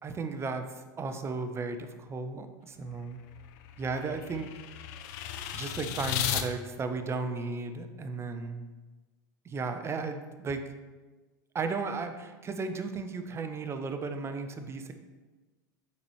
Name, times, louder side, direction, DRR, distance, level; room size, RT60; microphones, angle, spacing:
voice 1, 0.0-3.2 3.8-4.5 5.5-8.7 9.4-10.6 11.5-14.9, right 4 dB, 25° right, 7 dB, 0.6 m, -35 dB
sound 1, 2.8-6.4, left 11 dB, 60° left, 0.5 m, -35 dB
8.2 x 4.1 x 3.1 m, 1.3 s
hypercardioid pair, 85°, 10 cm